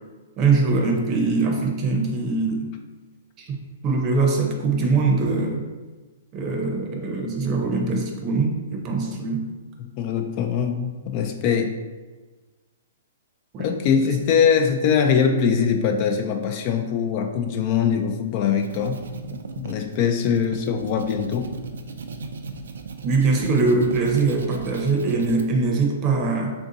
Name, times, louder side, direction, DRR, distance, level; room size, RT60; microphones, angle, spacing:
voice 1, 0.4-2.7 3.4-3.5 3.8-5.6 6.3-9.5 13.5-13.7 23.0-26.5, right 3 dB, 30° right, 1 dB, 0.7 m, -22 dB
voice 2, 9.8-11.7 13.6-19.0 19.3-21.5, left 7 dB, 40° left, 5 dB, 0.3 m, -22 dB
sound 1, 18.4-25.4, right 4 dB, 90° right, 0.4 m, -37 dB
3.5 x 2.6 x 3.8 m, 1.3 s
hypercardioid pair, 150°, 0 cm